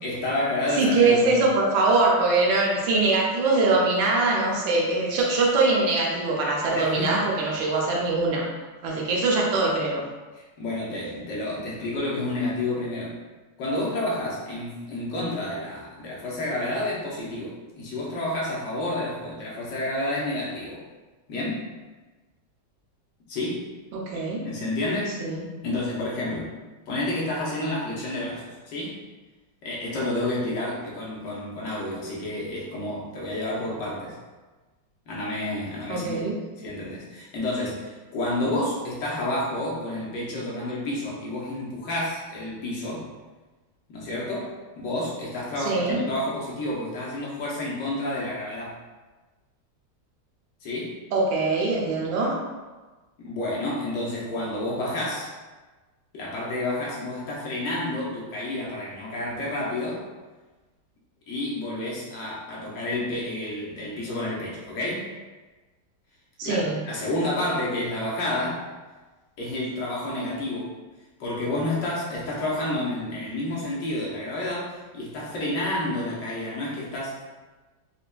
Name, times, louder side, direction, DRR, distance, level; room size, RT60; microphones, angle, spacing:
voice 1, 0.0-1.4 6.7-7.4 10.3-13.2 13.6-20.8 21.3-21.7 23.3-23.7 24.4-25.2 25.6-26.6 26.9-29.0 29.6-34.2 35.1-43.1 43.9-48.8 50.6-51.0 53.2-55.3 56.1-60.1 61.3-65.1 66.4-68.7 69.4-70.7 71.2-77.2, left 1 dB, 70° left, -5 dB, 1.4 m, -30 dB
voice 2, 0.8-8.4 8.8-10.0 23.9-24.4 25.2-25.4 35.9-36.3 45.7-46.0 51.1-52.4 66.4-66.8, right 3 dB, 85° right, -2 dB, 1.5 m, -22 dB
4.3 x 2.4 x 2.2 m, 1.2 s
omnidirectional pair, 2.0 m